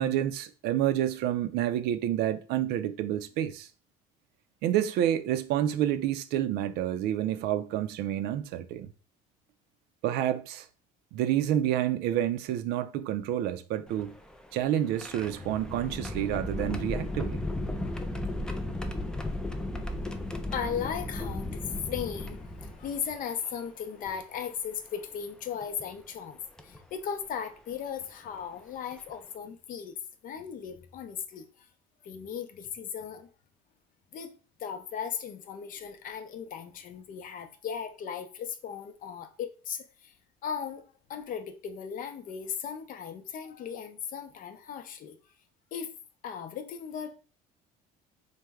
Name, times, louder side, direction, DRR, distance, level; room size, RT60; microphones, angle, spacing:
voice 1, 0.0-3.7 4.6-8.9 10.0-10.7 11.1-14.1 14.5-17.4, right 11 dB, 70° right, 0.4 m, -29 dB
sound 1, 13.9-23.2 24.0-24.1 25.6-25.8 26.6-26.8 28.4-28.5 28.9-29.1, left 1 dB, 5° left, 0.3 m, -35 dB
voice 2, 20.5-30.0 30.2-31.7 32.0-33.3 34.1-40.1 40.4-40.8 41.1-45.2 45.7-46.0 46.2-47.1, left 7 dB, 50° left, 0.6 m, -37 dB
3.2 x 2.1 x 3.4 m
supercardioid pair, 105°, 18 cm